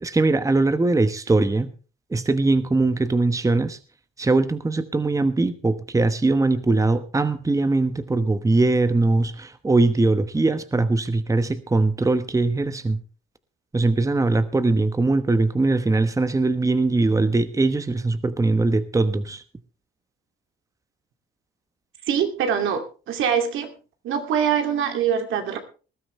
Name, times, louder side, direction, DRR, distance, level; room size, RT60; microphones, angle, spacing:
voice 1, 0.0-1.7 2.1-3.8 4.2-13.0 13.7-19.4, right 2 dB, 15° right, 12 dB, 1.1 m, -21 dB
voice 2, 22.0-23.7 24.0-25.6, right 8 dB, 85° right, 6 dB, 2.6 m, -23 dB
20.0 x 12.5 x 3.3 m, 0.35 s
cardioid pair, 90°, 20 cm